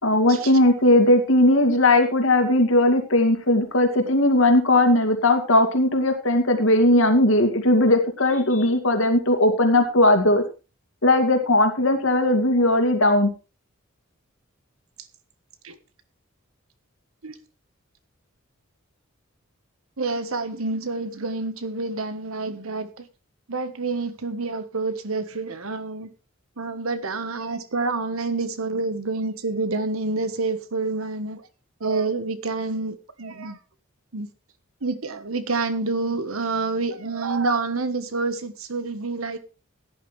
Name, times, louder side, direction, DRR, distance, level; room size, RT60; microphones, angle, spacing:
voice 1, 0.0-10.4 11.0-13.3, left 1 dB, 70° left, 2.4 m, -18 dB
voice 2, 20.0-23.0 23.5-26.1 26.6-31.4 31.8-33.6 34.1-34.3 34.8-39.4, right 3 dB, 90° right, 1.3 m, -28 dB
16.5 x 10.5 x 3.3 m
head